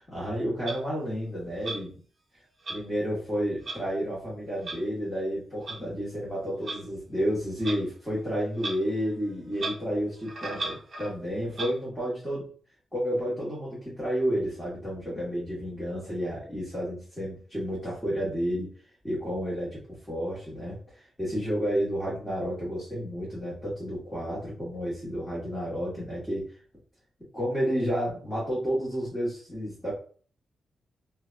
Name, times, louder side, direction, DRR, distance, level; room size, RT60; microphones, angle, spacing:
voice 1, 0.1-2.0 2.7-12.5 12.9-18.7 19.0-19.8 20.1-26.5 27.3-29.9, equal, 10° left, -8 dB, 1.3 m, -31 dB
Clock, 0.7-0.8 1.6-1.8 2.6-2.8 3.6-3.8 4.6-4.8 5.7-5.8 6.6-6.8 7.6-7.8 8.6-8.8 9.0-9.1 9.5-9.8 10.2-11.1 11.5-11.7, right 3 dB, 40° right, 0.8 m, -34 dB
3.2 x 2.2 x 2.5 m, 0.42 s
wide cardioid pair, 150°, 0 cm